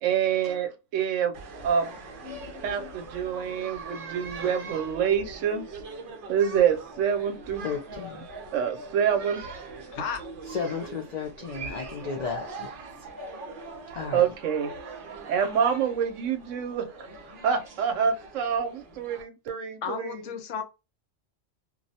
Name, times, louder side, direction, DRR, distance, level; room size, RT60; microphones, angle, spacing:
voice 1, 0.0-1.3 1.6-1.9 2.6-5.7 6.3-7.6 8.5-9.4 14.1-14.7 15.3-16.9 17.4-20.4, right 8 dB, 80° right, 0.9 m, -26 dB
sound 1, 1.3-19.2, right 3 dB, 55° right, 0.6 m, -42 dB
voice 2, 2.2-2.9 9.9-10.2 19.8-20.6, left 6 dB, 70° left, 0.9 m, -34 dB
voice 3, 7.6-8.3 10.4-12.7 13.0-13.1 13.9-14.2, left 5 dB, 90° left, 0.3 m, -34 dB
2.3 x 2.0 x 2.6 m
omnidirectional pair, 1.3 m